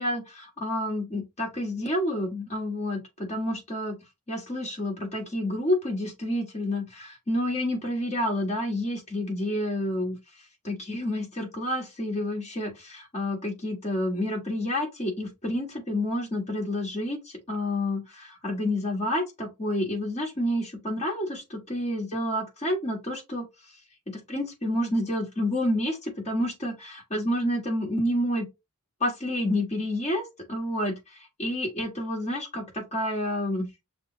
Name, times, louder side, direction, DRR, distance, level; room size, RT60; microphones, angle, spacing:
voice 1, 0.0-4.0 4.3-10.2 10.6-23.5 24.1-28.4 29.0-30.2 30.5-33.7, left 1 dB, 30° left, 1.5 m, -29 dB
6.0 x 2.0 x 3.8 m
head